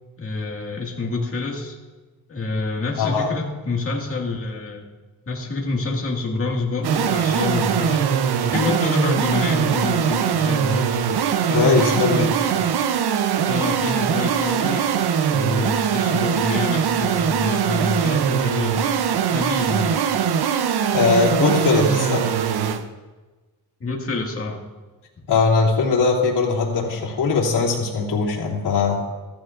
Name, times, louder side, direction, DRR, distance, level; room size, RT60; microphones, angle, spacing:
voice 1, 0.2-1.8 2.3-4.8 5.3-8.1 8.4-10.9 11.5-12.7 13.5-14.9 15.3-19.0 19.3-20.1 20.7-20.8 23.8-24.6, left 3 dB, 35° left, -1 dB, 2.0 m, -27 dB
voice 2, 3.0-3.3 11.5-12.2 20.9-22.3 25.3-29.0, left 4 dB, 85° left, -4 dB, 3.1 m, -20 dB
sound 1, 6.8-22.8, right 8 dB, 75° right, 0.8 m, -21 dB
15.5 x 14.5 x 2.6 m, 1.2 s
wide cardioid pair, 145°, 39 cm